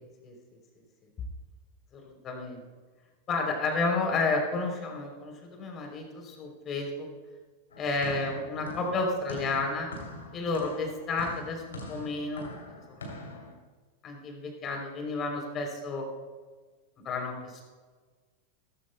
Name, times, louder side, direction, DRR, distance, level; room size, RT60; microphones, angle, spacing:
voice 1, 1.9-2.6 3.3-7.1 7.8-9.9 10.3-12.5 12.9-13.5 14.0-16.0 17.0-17.6, left 3 dB, 30° left, 2 dB, 3.2 m, -31 dB
sound 1, 7.7-13.5, left 1 dB, 70° left, 2.8 m, -43 dB
17.5 x 14.5 x 2.2 m, 1.4 s
figure-of-eight pair, 90°, 0 cm